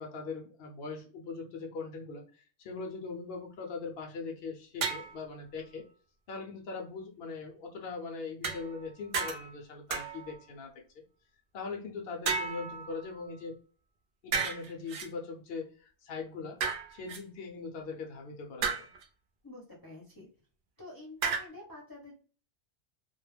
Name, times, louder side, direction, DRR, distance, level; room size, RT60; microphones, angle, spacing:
voice 1, 0.0-5.9 6.3-10.7 11.5-13.6 14.2-16.6 16.9-18.9, left 4 dB, 65° left, 1 dB, 0.8 m, -41 dB
sound 1, 4.8-5.2 8.4-8.9 9.1-9.6 9.9-10.4 12.3-13.3 14.3-15.1 16.6-17.2 18.6-19.0 21.2-21.4, right 5 dB, 60° right, 0.7 m, -33 dB
voice 2, 19.4-20.3 20.8-22.1, left 2 dB, 25° left, -4 dB, 0.6 m, -48 dB
2.3 x 2.0 x 3.1 m, 0.41 s
omnidirectional pair, 1.1 m